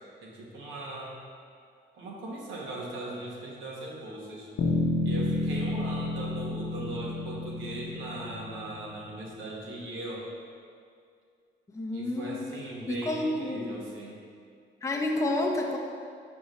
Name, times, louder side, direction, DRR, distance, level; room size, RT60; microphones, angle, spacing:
voice 1, 0.2-1.2 1.9-4.5 5.0-10.3 11.9-14.2, right 1 dB, 80° right, -3 dB, 1.3 m, -39 dB
sound 1, 4.6-8.9, left 3 dB, 75° left, 0.7 m, -30 dB
voice 2, 11.7-12.5 12.9-13.8 14.8-15.8, left 2 dB, 15° left, -1 dB, 0.6 m, -30 dB
6.0 x 5.4 x 3.1 m, 2.2 s
cardioid pair, 90°, 20 cm